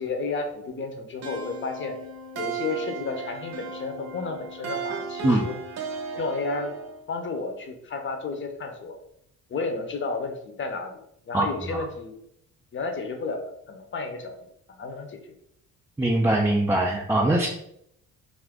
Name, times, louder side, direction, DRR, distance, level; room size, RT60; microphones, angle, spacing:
voice 1, 0.0-2.0 2.3-5.5 6.1-6.7 7.1-9.0 9.5-11.0 11.3-12.2 12.7-14.4 14.8-15.3, left 3 dB, 40° left, 5 dB, 0.6 m, -32 dB
sound 1, 1.2-7.0, right 5 dB, 60° right, 0.7 m, -35 dB
voice 2, 11.3-11.8 16.0-17.5, right 1 dB, 10° right, -3 dB, 0.4 m, -22 dB
2.5 x 2.5 x 3.5 m, 0.74 s
cardioid pair, 90°, 30 cm